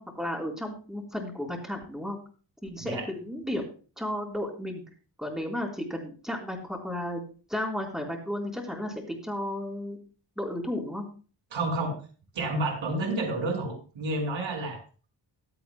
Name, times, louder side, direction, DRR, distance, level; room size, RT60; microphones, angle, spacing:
voice 1, 0.0-2.2 2.6-3.6 4.0-4.8 5.2-7.2 7.5-10.0 10.4-11.1, left 1 dB, ahead, 0 dB, 4.2 m, -33 dB
voice 2, 11.5-12.0 12.3-14.8, right 2 dB, 85° right, 1 dB, 6.0 m, -30 dB
24.5 x 8.6 x 2.3 m, 0.37 s
wide cardioid pair, 115°, 45 cm